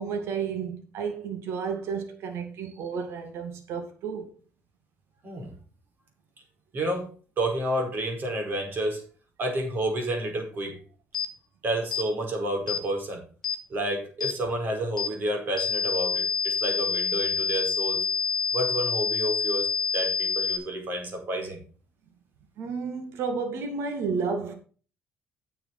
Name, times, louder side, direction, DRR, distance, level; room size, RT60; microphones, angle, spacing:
voice 1, 0.0-4.3 22.6-24.6, right 5 dB, 75° right, 2.3 m, -32 dB
voice 2, 6.7-7.1 7.4-9.0 9.4-10.8 11.6-13.2 13.7-18.1 18.5-19.7 19.9-21.6, right 1 dB, 45° right, 4.9 m, -30 dB
sound 1, 11.1-11.3 11.9-12.1 12.7-12.8 13.4-13.6 14.2-14.4 15.0-15.1 15.6-20.6, left 6 dB, 10° left, 2.9 m, -27 dB
9.7 x 6.7 x 5.9 m
cardioid pair, 100°, 4 cm